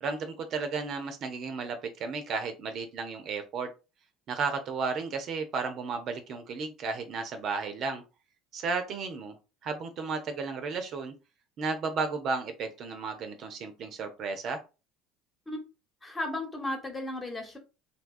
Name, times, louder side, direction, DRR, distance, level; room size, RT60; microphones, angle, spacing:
voice 1, 0.0-3.7 4.3-8.0 8.5-9.3 9.6-11.1 11.6-14.6, right 4 dB, 50° right, 7 dB, 0.5 m, -33 dB
voice 2, 16.0-17.6, left 1 dB, 20° left, 2 dB, 1.1 m, -34 dB
2.7 x 2.3 x 2.5 m, 0.30 s
hypercardioid pair, 70°, 0 cm